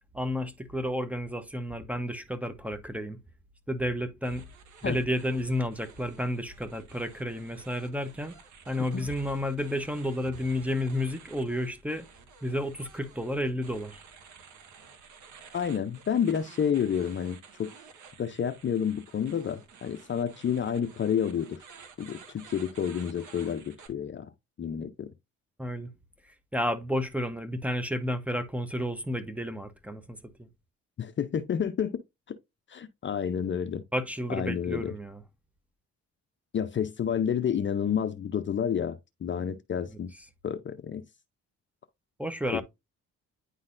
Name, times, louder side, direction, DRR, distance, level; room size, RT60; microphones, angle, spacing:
voice 1, 0.1-3.2 3.7-4.5 4.8-8.4 8.7-12.1 12.4-14.0 25.6-25.9 26.5-30.5 33.9-35.2 42.2-42.6, equal, 5° right, 0.9 m, -31 dB
sound 1, 4.2-23.9, right 6 dB, 75° right, 1.6 m, -52 dB
voice 2, 15.5-17.7 18.2-21.6 22.0-24.3 24.6-25.1 31.0-32.0 32.3-32.4 32.7-33.8 34.3-34.9 36.5-40.1 40.4-41.0 42.5-42.6, left 8 dB, 40° left, 0.6 m, -30 dB
9.6 x 3.9 x 2.5 m
cardioid pair, 90°, 30 cm